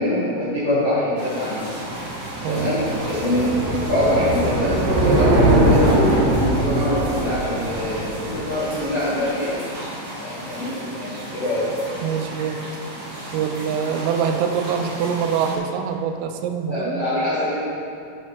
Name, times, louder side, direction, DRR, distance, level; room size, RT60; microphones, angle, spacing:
voice 1, 0.0-1.6 2.5-9.5 10.2-11.7 14.2-14.3 16.7-17.6, left 1 dB, 90° left, -10 dB, 1.3 m, -24 dB
sound 1, 1.2-15.6, equal, 50° right, 2.2 m, -34 dB
sound 2, 1.6-9.0, right 1 dB, 70° right, 2.9 m, -21 dB
voice 2, 2.4-2.8 12.0-12.6 13.3-16.9, right 7 dB, 85° right, 6 dB, 3.2 m, -24 dB
9.7 x 8.8 x 3.2 m, 2.5 s
omnidirectional pair, 5.7 m